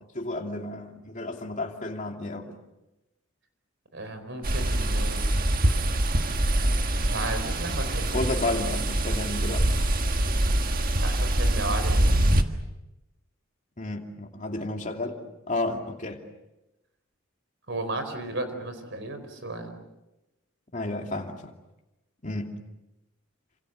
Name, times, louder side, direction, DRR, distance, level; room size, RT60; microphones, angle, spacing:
voice 1, 0.1-2.6 8.1-9.7 13.8-15.2 15.5-16.2 20.7-21.5 22.2-22.6, left 2 dB, 35° left, 2 dB, 2.7 m, -32 dB
voice 2, 3.9-5.4 7.0-8.3 11.0-12.1 17.7-19.8, right 2 dB, 60° right, 8 dB, 4.7 m, -34 dB
sound 1, 4.4-12.4, right 1 dB, 45° right, 1.6 m, -24 dB
28.5 x 27.0 x 6.6 m, 0.97 s
head